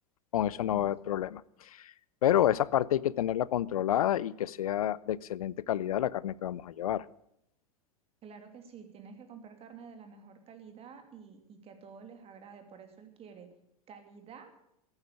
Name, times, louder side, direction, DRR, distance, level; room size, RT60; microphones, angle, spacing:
voice 1, 0.3-1.9 2.2-7.0, left 11 dB, 70° left, 22 dB, 0.5 m, -29 dB
voice 2, 8.2-13.5 13.9-14.5, right 6 dB, 30° right, 7 dB, 2.8 m, -50 dB
14.5 x 9.7 x 8.4 m, 0.77 s
figure-of-eight pair, 90°, 19 cm